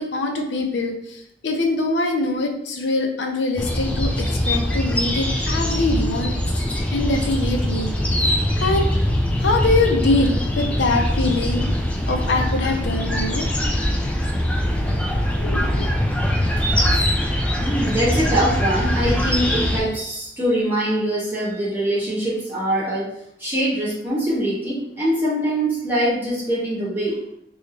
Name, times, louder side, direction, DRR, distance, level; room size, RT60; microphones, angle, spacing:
voice 1, 0.0-7.9 8.6-8.9 9.4-11.7 12.1-13.5 14.3-14.4 15.4-15.9, left 2 dB, 75° left, 3 dB, 0.6 m, -23 dB
sound 1, 3.6-19.8, equal, 5° left, 0.3 m, -22 dB
voice 2, 17.6-23.1 23.4-27.4, right 1 dB, 10° right, -10 dB, 1.4 m, -23 dB
3.8 x 2.3 x 3.2 m, 0.78 s
head